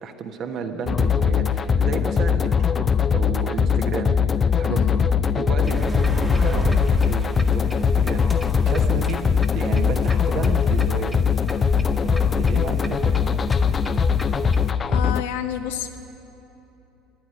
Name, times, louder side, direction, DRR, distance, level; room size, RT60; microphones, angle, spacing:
voice 1, 0.0-2.5 2.8-2.9 3.1-5.0 5.3-6.8 7.0-9.2 9.5-11.2 12.0-13.2, right 5 dB, 45° right, 5 dB, 1.4 m, -32 dB
sound 1, 0.9-15.2, left 6 dB, 25° left, 0.4 m, -21 dB
voice 2, 4.7-5.0 14.9-16.0, left 10 dB, 65° left, 7 dB, 0.9 m, -29 dB
sound 2, 5.6-14.7, right 1 dB, ahead, 1.5 m, -31 dB
13.5 x 11.0 x 9.8 m, 3.0 s
figure-of-eight pair, 70°, 0 cm